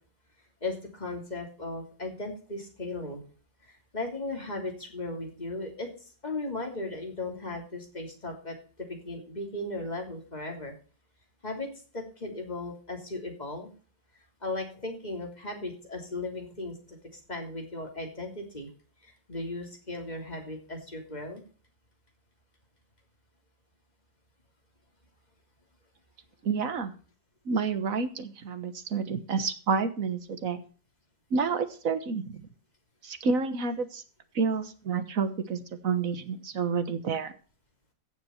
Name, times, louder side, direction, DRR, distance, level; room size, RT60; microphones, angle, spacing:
voice 1, 0.6-3.2 3.6-10.7 11.4-11.7 11.9-13.7 14.4-18.7 19.0-21.4, left 2 dB, 20° left, 2 dB, 3.3 m, -37 dB
voice 2, 26.4-26.9 27.4-30.6 31.3-32.4 33.0-34.0 34.3-37.3, right 5 dB, 50° right, 10 dB, 1.6 m, -29 dB
15.5 x 7.2 x 4.4 m, 0.39 s
omnidirectional pair, 2.0 m